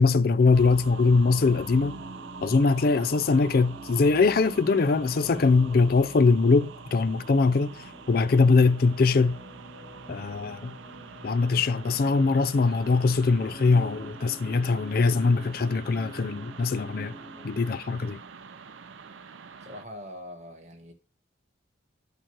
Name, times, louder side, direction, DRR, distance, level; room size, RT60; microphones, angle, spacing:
voice 1, 0.0-2.0 2.4-9.4 10.1-10.8 11.2-17.1 17.4-18.2, left 4 dB, 50° left, 0.4 m, -22 dB
sound 1, 0.5-19.8, right 5 dB, 80° right, 0.6 m, -45 dB
sound 2, 0.7-17.5, right 1 dB, 15° left, 1.4 m, -47 dB
voice 2, 19.6-20.9, left 1 dB, 35° right, 1.3 m, -42 dB
9.0 x 3.1 x 6.1 m
head